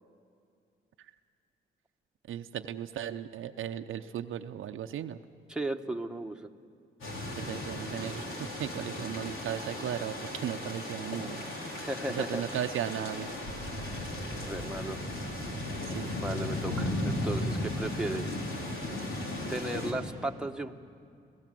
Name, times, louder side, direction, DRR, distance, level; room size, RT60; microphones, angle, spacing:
voice 1, 2.3-5.2 7.4-11.4 12.1-13.3 15.9-16.1, right 10 dB, 80° right, 6 dB, 0.7 m, -36 dB
voice 2, 5.5-6.5 11.8-12.4 14.4-15.0 16.2-18.4 19.5-20.8, right 1 dB, 5° right, 3 dB, 1.3 m, -35 dB
sound 1, 7.0-19.9, left 1 dB, 80° left, 3.8 m, -36 dB
28.5 x 16.0 x 7.6 m, 2.5 s
supercardioid pair, 60°, 21 cm